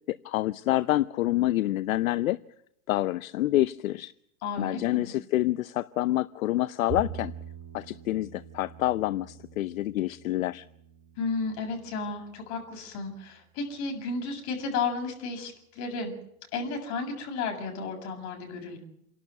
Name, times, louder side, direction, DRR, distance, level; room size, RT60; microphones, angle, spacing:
voice 1, 0.1-2.4 2.9-4.1 4.6-7.3 7.7-10.6, left 15 dB, 70° left, 16 dB, 0.8 m, -27 dB
voice 2, 4.4-5.1 11.2-16.1 16.5-18.8, left 4 dB, 40° left, 3 dB, 7.7 m, -33 dB
Bowed string instrument, 6.9-13.2, right 9 dB, 30° right, 7.4 m, -44 dB
29.0 x 12.0 x 9.4 m, 0.76 s
hypercardioid pair, 135°, 43 cm